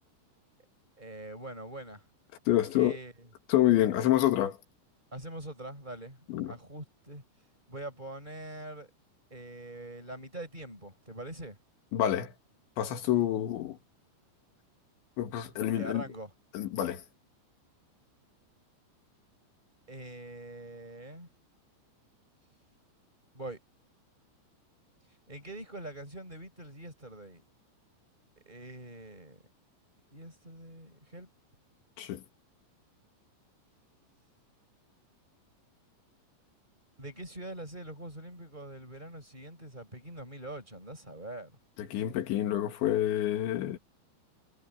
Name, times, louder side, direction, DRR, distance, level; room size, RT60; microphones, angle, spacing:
voice 1, 1.0-2.0 2.7-3.3 5.1-7.2 7.7-8.9 9.3-11.6 15.5-16.3 19.9-21.3 23.3-23.6 25.3-27.4 28.4-29.4 30.1-31.3 37.0-41.5, right 1 dB, 10° right, 4.8 m, -44 dB
voice 2, 2.5-3.0 3.5-4.6 6.3-6.5 11.9-12.3 12.8-13.8 15.2-16.0 16.5-17.0 32.0-32.2 41.8-43.8, left 13 dB, 75° left, 4.2 m, -27 dB
omnidirectional pair, 5.3 m